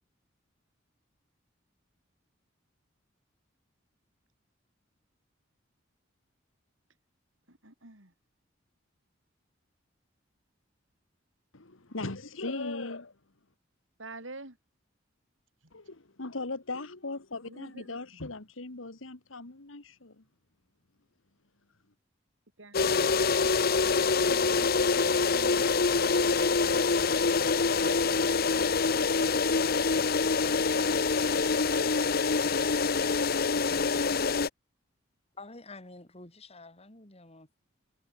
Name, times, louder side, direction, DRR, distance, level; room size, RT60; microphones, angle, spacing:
voice 1, 7.5-8.1 14.0-14.6 17.5-18.0 22.6-23.5 24.0-26.9 27.8-29.6, right 2 dB, 80° right, 6.1 m, -48 dB
voice 2, 11.5-13.1 15.7-20.2, left 3 dB, 90° left, 1.9 m, -38 dB
sound 1, 22.7-34.5, left 4 dB, 50° left, 0.9 m, -25 dB
voice 3, 35.4-37.6, left 3 dB, 30° left, 3.5 m, -48 dB
head